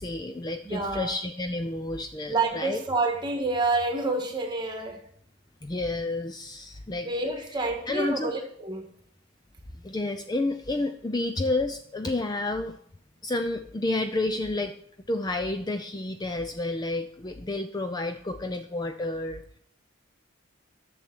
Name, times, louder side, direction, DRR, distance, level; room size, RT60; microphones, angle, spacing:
voice 1, 0.0-2.8 5.6-7.1 7.9-8.3 9.8-12.8 13.2-14.7 15.1-19.6, left 2 dB, 20° left, 0.5 m, -30 dB
voice 2, 0.6-1.1 2.3-5.0 7.0-8.8, right 3 dB, 20° right, 1.7 m, -28 dB
10.5 x 6.8 x 6.1 m
head